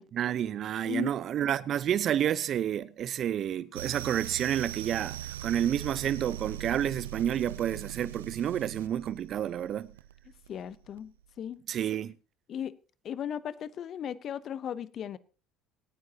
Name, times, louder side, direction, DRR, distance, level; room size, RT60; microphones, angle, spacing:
voice 1, 0.1-9.9 11.7-12.1, right 10 dB, 50° right, 0.8 m, -30 dB
sound 1, 3.7-11.3, right 12 dB, 85° right, 0.5 m, -40 dB
voice 2, 10.5-11.6 12.5-12.7 13.0-15.2, left 9 dB, 50° left, 0.8 m, -36 dB
25.0 x 9.5 x 2.9 m
hypercardioid pair, 65°, 0 cm